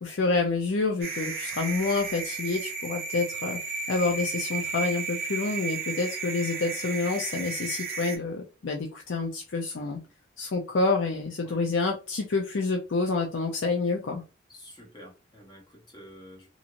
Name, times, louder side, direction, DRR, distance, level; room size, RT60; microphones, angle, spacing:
voice 1, 0.0-3.6 3.9-10.0 10.4-14.2, left 3 dB, 75° left, 0.5 m, -28 dB
sound 1, 1.0-8.2, right 4 dB, 50° right, 0.6 m, -34 dB
voice 2, 14.5-16.5, equal, 25° left, 1.0 m, -49 dB
2.9 x 2.7 x 2.5 m
head